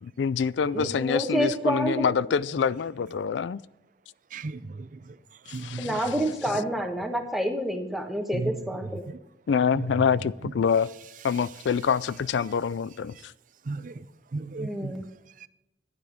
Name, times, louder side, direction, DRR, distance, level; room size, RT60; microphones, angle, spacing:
voice 1, 0.0-3.6 5.5-5.9 9.5-10.9 11.2-13.1, left 6 dB, 80° left, 0.4 m, -26 dB
voice 2, 0.7-2.2 5.8-9.0 14.6-15.1, equal, ahead, 1.4 m, -28 dB
voice 3, 4.3-4.9 5.5-5.9 8.3-8.5 9.7-9.9 13.7-13.9 14.3-14.9 15.4-15.5, right 3 dB, 45° right, 0.5 m, -34 dB
12.0 x 9.9 x 5.0 m
head